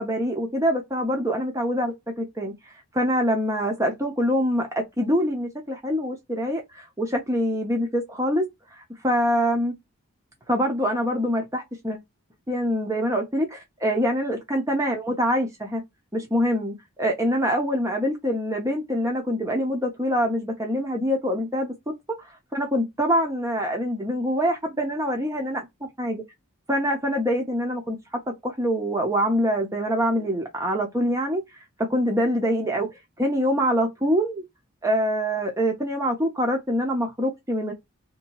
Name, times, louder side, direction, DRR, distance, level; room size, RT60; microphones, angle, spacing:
voice 1, 0.0-9.7 10.5-12.0 12.5-15.8 16.1-25.7 26.0-26.2 26.7-28.0 28.3-31.6 31.9-32.9 33.2-34.4 34.8-37.7, equal, 15° right, 0.7 m, -25 dB
2.7 x 2.2 x 3.0 m
head